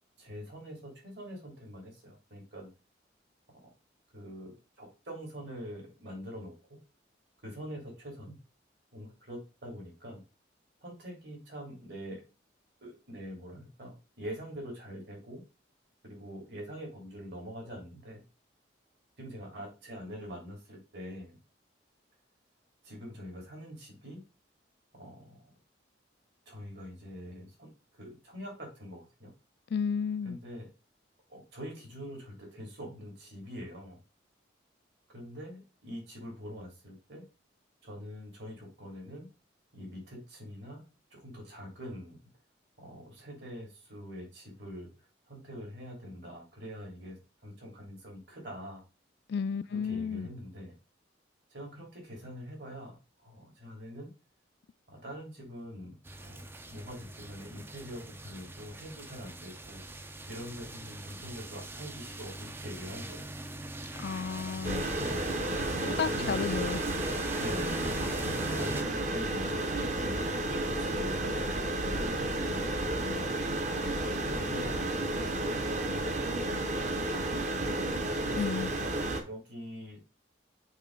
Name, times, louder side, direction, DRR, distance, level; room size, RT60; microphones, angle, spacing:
voice 1, 0.2-2.7 3.6-3.7 4.1-6.5 7.4-8.4 8.9-10.2 10.8-12.2 12.8-15.4 16.0-18.2 19.2-21.4 22.8-24.2 24.9-25.4 26.5-27.7 28.0-29.3 30.2-30.7 31.3-34.0 35.1-37.3 37.8-39.3 39.7-42.2 42.8-44.9 45.3-47.2 47.4-48.8 49.7-50.7 51.5-54.1 54.9-59.8 60.3-63.3 65.0-65.3 65.6-66.4 67.4-73.3 74.2-76.6 77.3-79.0 79.3-80.0, equal, 60° right, 3.0 m, -44 dB
voice 2, 29.7-30.4 49.3-50.3 64.0-64.9 65.8-66.8 78.4-78.7, left 6 dB, 55° left, 0.3 m, -32 dB
sound 1, 56.0-68.8, right 2 dB, 10° right, 0.4 m, -42 dB
sound 2, 64.6-79.2, right 1 dB, 40° right, 1.0 m, -32 dB
6.6 x 3.2 x 5.2 m
head